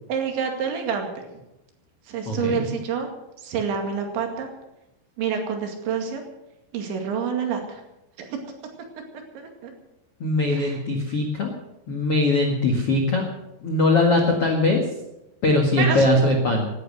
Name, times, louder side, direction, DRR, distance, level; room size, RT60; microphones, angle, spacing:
voice 1, 0.1-1.1 2.1-3.1 3.4-4.5 5.2-6.2 6.7-7.8 8.2-8.4 9.3-9.7 10.5-10.8 15.8-16.1, right 6 dB, 70° right, 3 dB, 4.4 m, -27 dB
voice 2, 2.2-2.7 10.2-11.5 11.9-13.2 13.6-14.8 15.4-16.7, left 2 dB, 55° left, 1 dB, 1.6 m, -21 dB
18.5 x 11.0 x 6.5 m, 0.93 s
omnidirectional pair, 5.6 m